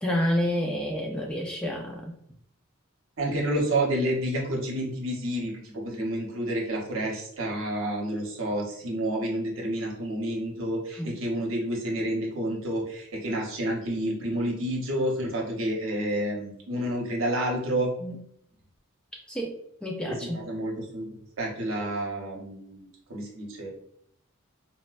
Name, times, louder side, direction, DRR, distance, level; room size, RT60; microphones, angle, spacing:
voice 1, 0.0-2.1 11.0-11.1 18.0-18.2 19.3-19.5 19.8-20.4, equal, 5° left, -1 dB, 0.3 m, -29 dB
voice 2, 3.2-17.9 20.1-23.7, right 1 dB, 65° right, 0 dB, 0.8 m, -29 dB
4.1 x 2.1 x 2.4 m, 0.70 s
head